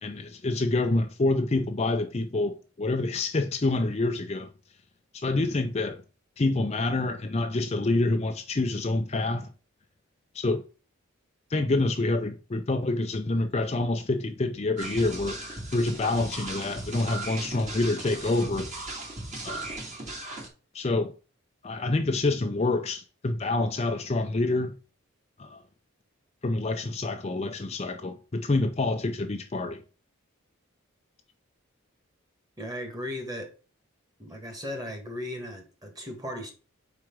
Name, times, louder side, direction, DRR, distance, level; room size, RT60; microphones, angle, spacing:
voice 1, 0.0-4.5 5.1-6.0 6.4-9.5 10.3-10.6 11.5-15.4 15.7-18.7 19.4-19.8 20.7-21.1 21.6-24.7 25.4-25.6 26.4-29.8, left 2 dB, 30° left, 0.5 m, -27 dB
sound 1, 14.8-20.5, right 2 dB, 35° right, 1.9 m, -37 dB
voice 2, 32.6-33.5 34.2-36.5, left 1 dB, 20° right, 1.7 m, -36 dB
4.9 x 4.7 x 5.9 m
head